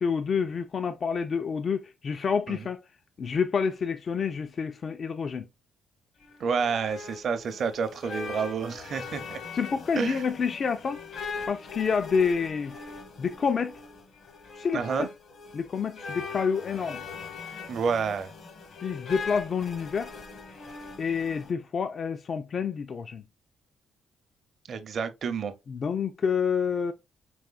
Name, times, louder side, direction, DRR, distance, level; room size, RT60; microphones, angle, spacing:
voice 1, 0.0-2.8 3.2-5.5 9.5-11.0 11.5-12.8 13.2-13.8 14.5-15.1 15.5-17.0 18.8-20.2 21.0-23.2 25.7-26.9, left 6 dB, 45° left, 0.3 m, -28 dB
sound 1, 6.2-21.5, left 4 dB, 70° left, 1.1 m, -41 dB
voice 2, 6.4-9.4 10.0-10.2 14.7-15.1 17.7-18.3 24.7-25.5, right 6 dB, 60° right, 0.6 m, -29 dB
4.8 x 3.3 x 2.4 m
cardioid pair, 90°, 0 cm